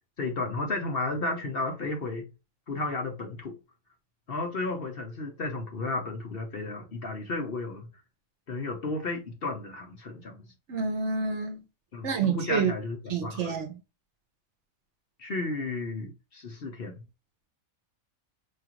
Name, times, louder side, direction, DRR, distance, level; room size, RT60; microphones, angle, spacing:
voice 1, 0.2-2.3 2.7-3.6 4.3-7.9 8.5-10.5 11.9-13.6 15.2-17.0, left 3 dB, 50° left, 0.9 m, -33 dB
voice 2, 10.7-11.6 12.0-12.7 13.1-13.7, right 5 dB, 60° right, 1.0 m, -28 dB
4.9 x 2.5 x 2.9 m
omnidirectional pair, 1.5 m